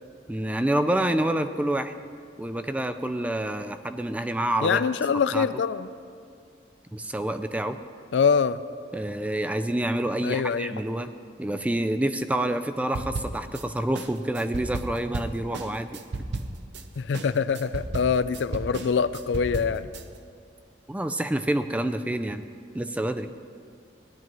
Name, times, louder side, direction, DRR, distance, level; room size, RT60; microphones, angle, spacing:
voice 1, 0.3-1.9 2.4-4.8 5.3-5.5 6.9-7.8 8.9-11.1 11.4-16.0 20.9-22.4 22.7-23.3, right 1 dB, 10° right, 9 dB, 0.3 m, -27 dB
voice 2, 4.6-5.9 8.1-8.6 10.2-10.7 17.0-19.8, left 6 dB, 80° left, 14 dB, 0.4 m, -24 dB
sound 1, 12.9-13.6 13.9-16.8 17.1-20.0, right 2 dB, 70° right, 0.7 m, -34 dB
18.0 x 11.0 x 3.0 m, 2.2 s
head